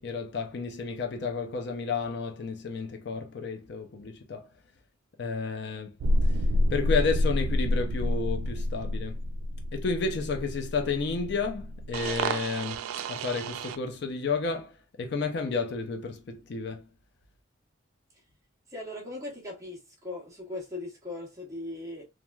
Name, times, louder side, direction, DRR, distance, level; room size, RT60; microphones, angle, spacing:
voice 1, 0.0-4.5 5.2-6.0 6.2-6.4 6.7-9.2 9.7-16.9, left 4 dB, 55° left, 0.4 m, -31 dB
sound 1, 6.0-13.8, equal, 90° right, 0.3 m, -29 dB
voice 2, 18.7-22.0, left 2 dB, 15° right, 0.8 m, -39 dB
3.0 x 2.3 x 2.2 m
head